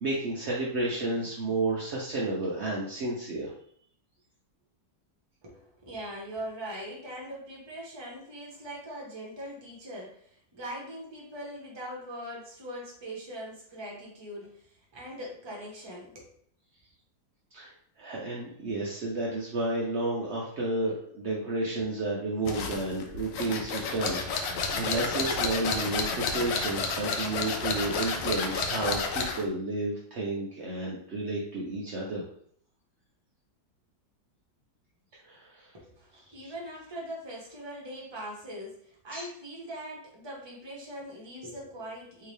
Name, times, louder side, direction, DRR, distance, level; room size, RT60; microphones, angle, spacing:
voice 1, 0.0-3.5 17.5-17.7 18.0-32.3 35.3-35.7 36.4-36.5 39.1-39.3, right 2 dB, 75° right, -4 dB, 0.6 m, -31 dB
voice 2, 5.4-16.3 35.7-42.3, equal, 20° right, -4 dB, 0.7 m, -41 dB
sound 1, 22.5-29.5, left 4 dB, 75° left, 1.2 m, -31 dB
3.5 x 2.8 x 3.2 m, 0.63 s
omnidirectional pair, 2.0 m